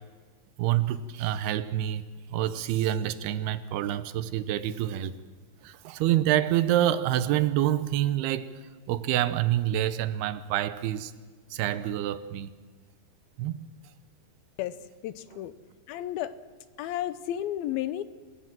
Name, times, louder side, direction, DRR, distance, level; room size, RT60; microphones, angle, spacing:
voice 1, 0.6-2.0 2.3-5.2 5.6-8.5 8.9-11.1 11.5-12.5 13.4-13.7 15.3-15.4, right 12 dB, 80° right, 13 dB, 2.8 m, -27 dB
voice 2, 15.0-15.5 15.9-16.4 16.8-18.0, left 12 dB, 75° left, 13 dB, 2.5 m, -32 dB
28.5 x 16.5 x 7.5 m, 1.5 s
omnidirectional pair, 4.5 m